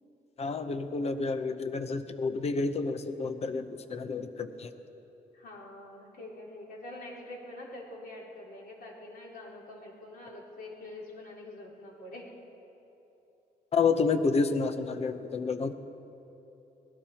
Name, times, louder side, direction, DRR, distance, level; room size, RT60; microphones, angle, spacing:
voice 1, 0.4-4.7 13.7-15.7, left 4 dB, 40° left, 9 dB, 0.8 m, -29 dB
voice 2, 5.3-12.3, left 1 dB, 80° left, -6 dB, 4.3 m, -45 dB
25.0 x 18.5 x 2.9 m, 3.0 s
cardioid pair, 140°, 16 cm